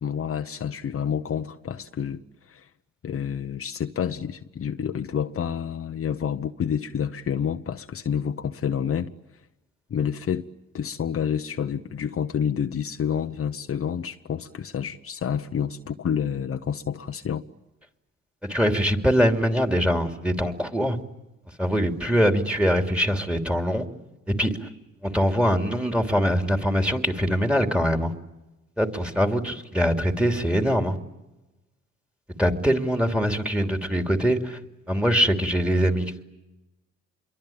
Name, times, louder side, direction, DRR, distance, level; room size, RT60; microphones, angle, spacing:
voice 1, 0.0-2.7 3.0-9.1 9.9-10.5 10.7-17.4, left 8 dB, 45° left, 1.0 m, -29 dB
voice 2, 18.4-21.0 21.6-23.9 24.3-24.7 25.0-28.1 28.8-31.0 32.4-34.6 34.9-36.2, equal, 5° right, 3.1 m, -23 dB
27.0 x 23.0 x 8.9 m
cardioid pair, 90°, 30 cm